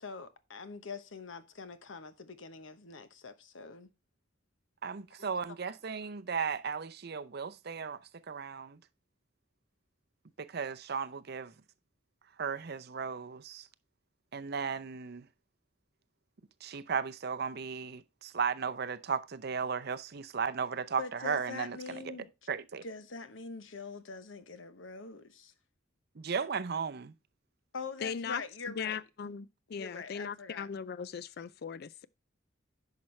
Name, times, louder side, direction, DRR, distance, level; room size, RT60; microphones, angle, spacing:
voice 1, 0.0-3.9 5.2-5.3 21.0-22.3 22.8-25.5 27.7-29.0 29.7-30.7, left 4 dB, 75° left, 1.0 m, -44 dB
voice 2, 4.8-8.0 8.3-8.8 10.4-11.5 12.4-13.7 14.3-15.3 16.6-21.8 22.0-22.1 22.5-22.8 26.2-27.1, right 6 dB, 55° right, 0.6 m, -35 dB
voice 3, 28.0-28.4 28.7-32.1, left 6 dB, 55° left, 0.4 m, -39 dB
10.5 x 5.9 x 3.2 m
head